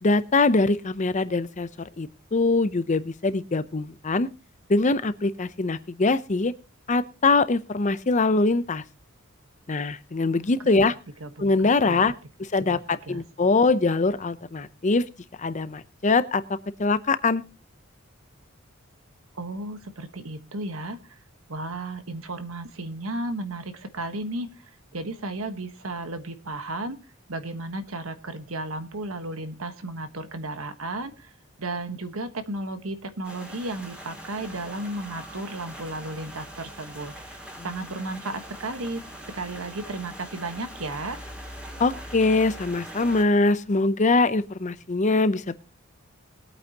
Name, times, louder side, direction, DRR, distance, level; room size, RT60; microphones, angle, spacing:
voice 1, 0.0-4.3 4.7-6.5 6.9-8.8 9.7-10.9 11.4-12.1 12.4-15.0 15.4-16.4 16.8-17.4 37.6-37.7 41.8-45.6, left 3 dB, 35° left, 14 dB, 0.6 m, -23 dB
voice 2, 11.2-12.0 12.6-12.8 13.1-13.2 19.3-21.2 21.5-27.0 27.3-31.3 31.6-39.0 39.3-41.2, right 2 dB, 75° right, 9 dB, 1.3 m, -34 dB
sound 1, 33.2-43.2, equal, 5° right, 2.6 m, -42 dB
21.5 x 8.8 x 2.9 m, 0.32 s
head